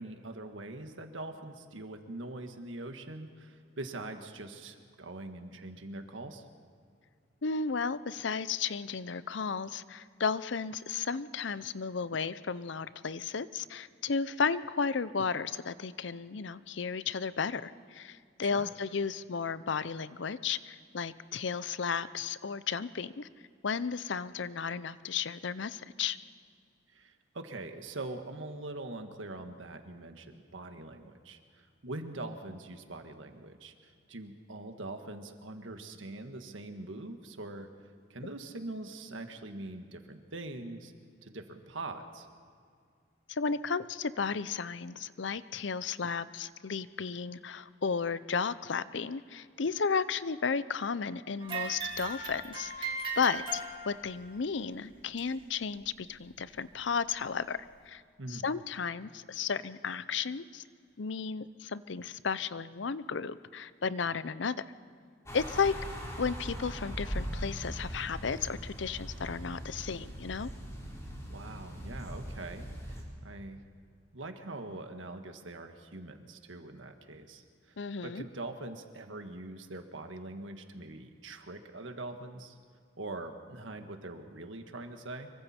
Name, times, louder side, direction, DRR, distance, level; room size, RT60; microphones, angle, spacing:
voice 1, 0.0-6.4 18.4-18.7 26.9-31.4 31.8-37.7 38.1-40.9 41.2-42.3 58.2-58.4 71.3-73.6 74.1-77.4 77.7-82.6 83.0-85.3, right 2 dB, 85° right, 6 dB, 1.6 m, -43 dB
voice 2, 7.4-23.3 23.6-26.2 43.3-57.6 57.9-58.0 58.3-60.6 61.0-64.6 65.3-65.7 66.2-70.5 77.8-78.3, left 5 dB, 70° left, 16 dB, 0.6 m, -34 dB
sound 1, 51.4-54.2 55.2-55.3 56.1-56.2 57.1-57.2, right 3 dB, 25° right, 3.2 m, -38 dB
sound 2, 65.2-73.0, equal, 15° left, 3.9 m, -40 dB
25.5 x 23.5 x 4.4 m, 2.2 s
head